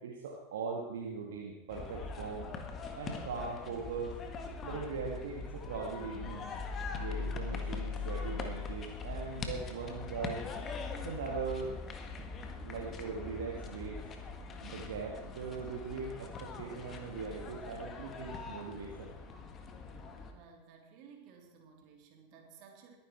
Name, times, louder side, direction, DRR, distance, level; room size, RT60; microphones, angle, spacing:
voice 1, 0.0-2.5 2.9-4.1 4.6-6.5 6.9-10.4 11.0-11.7 12.6-14.0 14.6-19.1, right 5 dB, 60° right, -1 dB, 2.0 m, -40 dB
sound 1, 1.7-20.3, left 4 dB, 30° left, 1.7 m, -41 dB
voice 2, 20.2-23.0, right 6 dB, 45° right, 2 dB, 3.0 m, -57 dB
21.5 x 9.9 x 4.6 m, 0.89 s
figure-of-eight pair, 85°, 0 cm